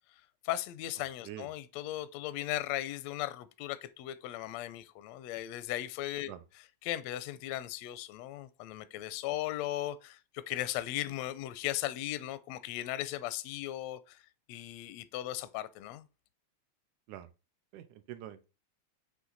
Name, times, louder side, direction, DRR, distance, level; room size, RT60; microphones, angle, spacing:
voice 1, 0.4-14.2 14.5-16.0, left 14 dB, 80° left, 1.5 m, -37 dB
voice 2, 17.7-18.5, right 12 dB, 85° right, 2.1 m, -45 dB
7.8 x 3.1 x 3.9 m
omnidirectional pair, 3.4 m